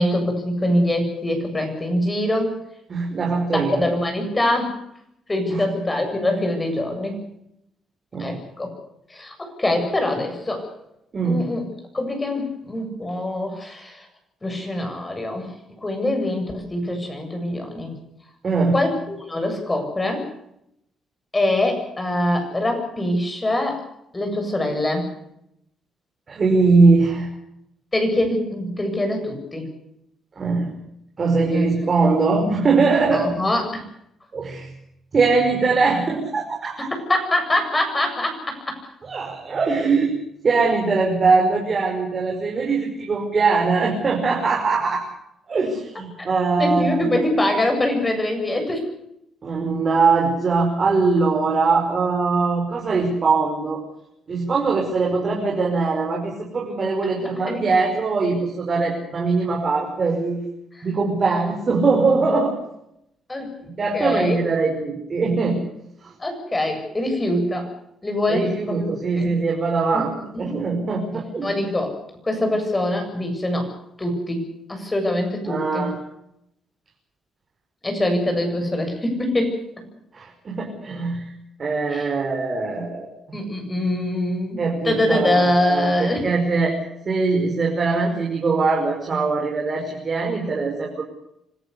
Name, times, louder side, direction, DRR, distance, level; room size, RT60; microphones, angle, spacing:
voice 1, 0.0-2.5 3.5-4.8 5.3-7.2 8.2-8.7 9.1-10.7 11.2-11.6 11.9-14.0 14.4-15.5 15.8-17.9 18.7-20.3 21.3-23.9 24.1-25.1 27.9-29.7 31.5-31.7 33.1-33.8 36.8-38.6 46.2-48.8 57.2-57.6 63.3-63.6 63.9-64.4 66.2-67.7 68.0-68.9 69.2-69.3 69.9-70.0 70.3-70.5 71.4-71.9 72.2-73.7 74.0-74.4 74.7-75.9 77.8-79.6 81.9-82.1 83.3-86.3, left 1 dB, 20° left, 5 dB, 7.8 m, -24 dB
voice 2, 2.9-3.8 5.5-5.6 8.1-8.4 11.1-11.5 18.4-18.8 26.3-27.3 30.4-30.7 31.2-33.3 34.3-34.7 35.1-36.9 39.0-40.2 40.4-45.0 45.5-47.1 49.4-53.8 54.3-60.4 60.8-62.6 63.8-65.6 66.0-66.1 68.3-71.5 75.5-75.9 80.1-81.3 81.6-83.1 84.6-91.0, right 4 dB, 40° right, 1 dB, 5.4 m, -21 dB
26.0 x 15.0 x 8.2 m, 0.78 s
cardioid pair, 90°, 0 cm